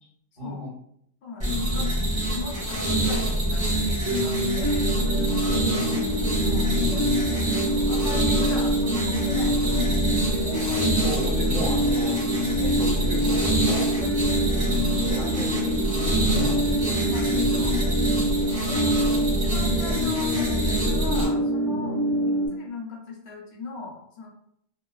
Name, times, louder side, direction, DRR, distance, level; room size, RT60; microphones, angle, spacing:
voice 1, 0.4-0.7 5.5-6.1 11.0-12.2 12.6-13.9 15.0-17.2, equal, 40° left, -5 dB, 0.9 m, -34 dB
voice 2, 1.2-4.9 6.4-6.7 7.7-10.9 17.0-17.8 18.8-22.0 22.2-24.3, left 3 dB, 65° left, -1 dB, 0.9 m, -39 dB
sound 1, 1.4-21.2, right 1 dB, 5° right, 1.1 m, -26 dB
sound 2, 4.0-22.5, right 1 dB, 35° right, 0.8 m, -26 dB
2.4 x 2.3 x 2.2 m, 0.71 s
omnidirectional pair, 1.2 m